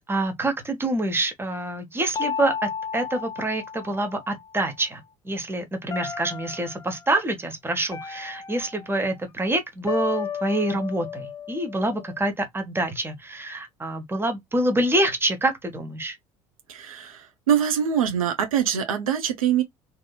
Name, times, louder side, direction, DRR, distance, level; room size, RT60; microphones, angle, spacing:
voice 1, 0.0-16.2, right 1 dB, 15° right, 0.9 m, -26 dB
sound 1, 2.1-4.5 5.9-6.9 7.9-9.2 9.9-12.2, left 7 dB, 20° left, 0.5 m, -34 dB
voice 2, 16.7-19.6, right 9 dB, 80° right, 0.6 m, -24 dB
2.7 x 2.7 x 2.2 m
figure-of-eight pair, 60°, 18 cm